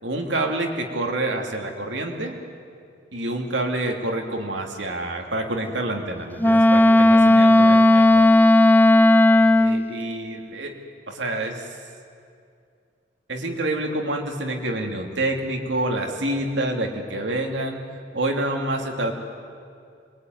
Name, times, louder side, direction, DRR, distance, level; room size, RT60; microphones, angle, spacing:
voice 1, 0.0-2.3 3.1-8.3 9.6-10.8 11.1-11.8 13.3-17.9 18.1-19.1, right 1 dB, 80° right, 2 dB, 3.0 m, -27 dB
Wind instrument woodwind instrument, 6.4-9.9, left 1 dB, 10° left, 0.7 m, -14 dB
26.0 x 22.0 x 9.6 m, 2.4 s
head